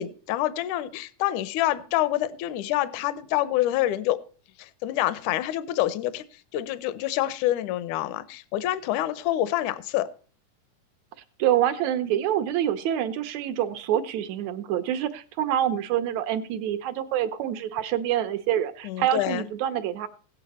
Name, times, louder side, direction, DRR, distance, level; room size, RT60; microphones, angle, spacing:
voice 1, 0.0-4.2 4.6-6.2 6.5-10.1 18.8-19.5, left 14 dB, 75° left, 1.9 m, -27 dB
voice 2, 11.4-20.1, right 11 dB, 75° right, 1.7 m, -26 dB
17.0 x 8.5 x 4.2 m
omnidirectional pair, 4.0 m